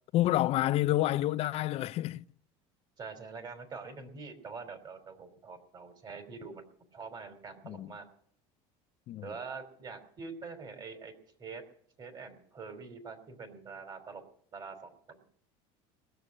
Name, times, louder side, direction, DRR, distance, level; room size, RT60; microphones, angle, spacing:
voice 1, 0.1-2.2 7.6-7.9 9.1-9.3, left 15 dB, 45° left, 0.5 m, -28 dB
voice 2, 3.0-8.1 9.2-11.1 11.4-11.7 12.0-14.2 14.5-15.2, right 4 dB, 30° right, 3.0 m, -45 dB
20.0 x 6.9 x 8.6 m
cardioid pair, 130°, 14 cm